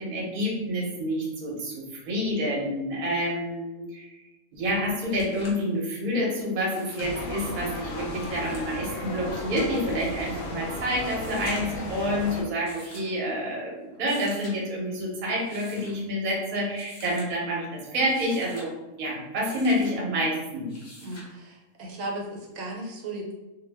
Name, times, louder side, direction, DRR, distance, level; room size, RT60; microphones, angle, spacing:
voice 1, 0.0-4.1 4.5-18.7 19.0-20.7, equal, 45° right, -3 dB, 0.7 m, -28 dB
sound 1, 4.6-4.7 5.0-5.7 6.6-7.2 8.1-8.8 9.7-10.2 11.1-11.9 12.7-13.2 13.9-14.6 15.3-16.0 16.8-17.3 17.9-18.7 19.4-19.9 20.7-21.3 22.7-22.8, left 1 dB, 35° left, 0.4 m, -47 dB
sound 2, 7.0-12.4, left 2 dB, 65° left, 0.8 m, -34 dB
voice 2, 21.0-23.3, right 2 dB, 80° right, 0 dB, 0.9 m, -36 dB
2.2 x 2.1 x 3.3 m, 1.1 s
omnidirectional pair, 1.4 m